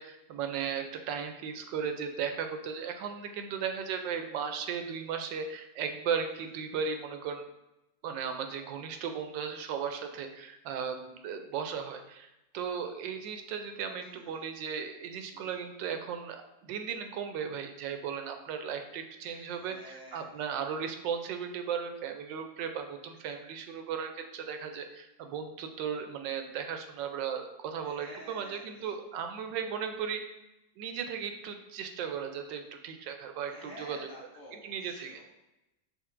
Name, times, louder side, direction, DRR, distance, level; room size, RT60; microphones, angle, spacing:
voice 1, 0.0-7.5 8.0-16.4 16.6-30.2 30.8-34.1 34.5-35.2, right 7 dB, 80° right, 6 dB, 1.3 m, -36 dB
voice 2, 14.0-14.5 15.3-15.6 19.2-20.4 27.8-28.9 33.5-35.2, equal, 60° left, -4 dB, 0.7 m, -50 dB
6.4 x 3.1 x 2.5 m, 0.92 s
omnidirectional pair, 1.9 m